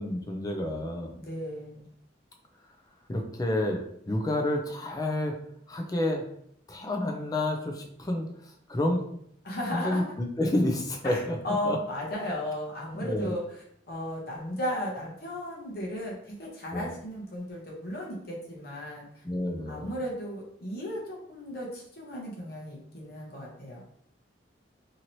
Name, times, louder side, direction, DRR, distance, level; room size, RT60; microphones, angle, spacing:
voice 1, 0.0-1.1 3.1-3.8 4.1-5.4 5.7-6.2 6.7-8.3 8.7-9.0 9.7-11.4 11.6-11.8 12.9-13.3 16.7-16.9 19.2-19.9, left 1 dB, 20° left, 2 dB, 0.4 m, -29 dB
voice 2, 1.2-1.9 9.4-10.1 11.0-13.4 13.9-19.2 19.7-23.8, left 1 dB, 55° left, -3 dB, 0.8 m, -35 dB
2.9 x 2.8 x 2.7 m, 0.70 s
head